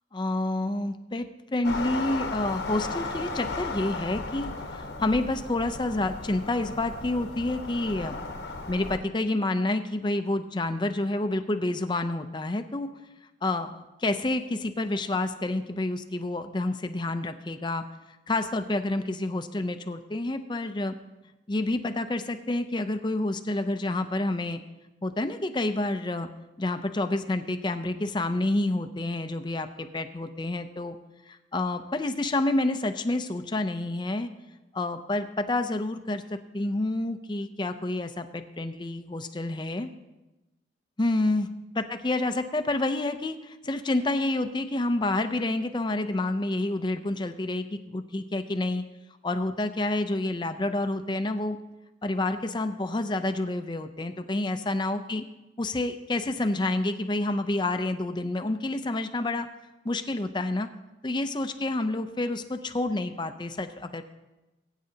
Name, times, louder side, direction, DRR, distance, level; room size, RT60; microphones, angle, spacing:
voice 1, 0.1-8.2 8.7-12.9 13.4-20.9 21.5-24.6 25.0-26.3 26.6-31.0 31.3-34.3 34.7-39.9 41.0-41.5 41.8-48.8 49.2-51.6 52.0-55.2 55.6-59.5 59.8-60.7 61.0-64.0, left 2 dB, 25° left, 8 dB, 0.5 m, -29 dB
sound 1, 1.6-9.0, left 3 dB, 60° left, 1.0 m, -35 dB
20.5 x 9.0 x 2.8 m, 1.0 s
head